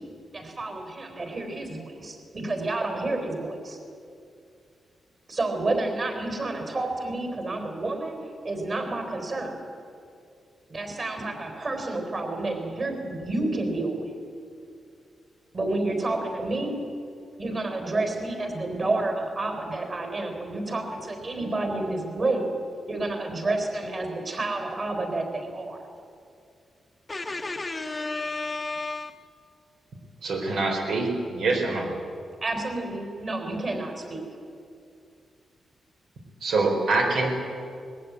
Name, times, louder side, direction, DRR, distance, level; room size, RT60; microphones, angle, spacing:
voice 1, 0.3-3.8 5.3-9.7 10.7-14.1 15.5-17.1 17.4-22.5 22.9-25.8 32.4-34.3, right 2 dB, 35° right, 5 dB, 3.9 m, -30 dB
voice 2, 27.1-29.1, left 3 dB, 20° left, 7 dB, 0.9 m, -32 dB
voice 3, 30.2-31.9 36.4-37.3, right 3 dB, 80° right, 1 dB, 4.2 m, -25 dB
20.5 x 15.0 x 9.5 m, 2.4 s
wide cardioid pair, 150°, 0 cm